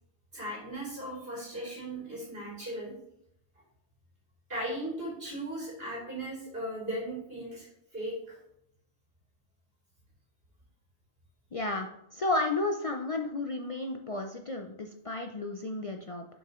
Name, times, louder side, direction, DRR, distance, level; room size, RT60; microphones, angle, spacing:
voice 1, 0.3-2.9 4.5-8.2, right 1 dB, 55° right, -7 dB, 3.6 m, -37 dB
voice 2, 11.5-16.3, left 2 dB, 50° left, 4 dB, 0.4 m, -32 dB
7.6 x 6.3 x 3.0 m, 0.75 s
omnidirectional pair, 1.2 m